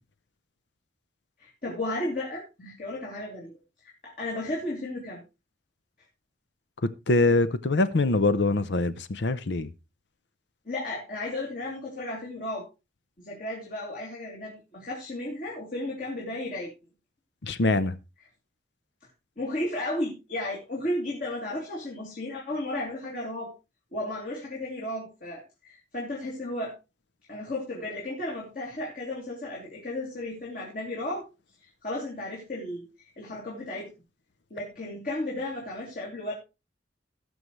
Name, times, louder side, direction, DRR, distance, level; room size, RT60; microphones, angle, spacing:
voice 1, 1.4-3.5 4.0-5.2 10.6-12.6 13.2-16.7 19.4-23.5 23.9-26.7 27.3-31.2 31.6-32.9 33.2-33.9 34.5-36.3, left 1 dB, 50° left, 3.0 m, -34 dB
voice 2, 7.1-9.7 17.4-18.0, left 2 dB, 75° left, 0.7 m, -24 dB
18.5 x 6.3 x 3.2 m
head